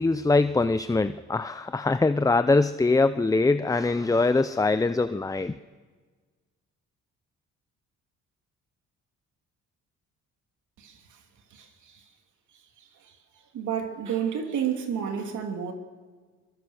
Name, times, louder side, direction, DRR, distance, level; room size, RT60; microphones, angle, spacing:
voice 1, 0.0-5.6, left 3 dB, 10° left, 0.6 m, -23 dB
voice 2, 13.5-15.7, right 8 dB, 75° right, 3.0 m, -30 dB
24.0 x 22.5 x 6.6 m
cardioid pair, 90°, 30 cm